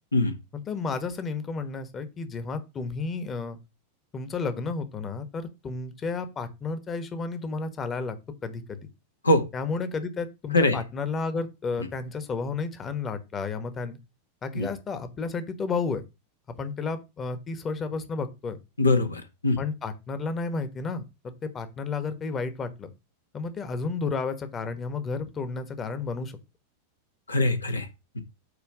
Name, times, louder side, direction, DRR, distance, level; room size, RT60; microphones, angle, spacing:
voice 1, 0.5-3.6 4.1-8.2 8.4-8.9 9.5-14.0 14.4-16.0 16.6-18.6 19.6-22.9 23.3-26.4, left 4 dB, 25° left, 1.2 m, -32 dB
voice 2, 18.8-19.6 27.3-27.9 28.1-28.2, left 2 dB, 80° left, 1.4 m, -22 dB
8.4 x 3.1 x 6.2 m
figure-of-eight pair, 90°, 0 cm